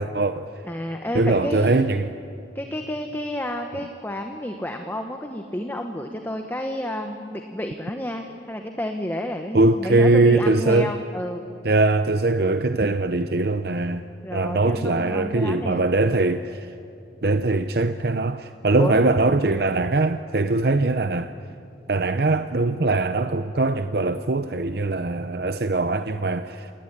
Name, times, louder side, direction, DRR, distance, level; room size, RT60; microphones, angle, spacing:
voice 1, 0.0-0.5 1.1-2.1 9.5-10.9 11.6-14.0 14.3-16.7 17.2-21.3 21.9-26.7, right 2 dB, 55° right, 9 dB, 0.7 m, -21 dB
voice 2, 0.6-1.8 2.5-11.4 14.2-15.8 18.8-19.0, left 1 dB, 10° left, 4 dB, 1.1 m, -30 dB
27.5 x 19.0 x 10.0 m, 2.7 s
head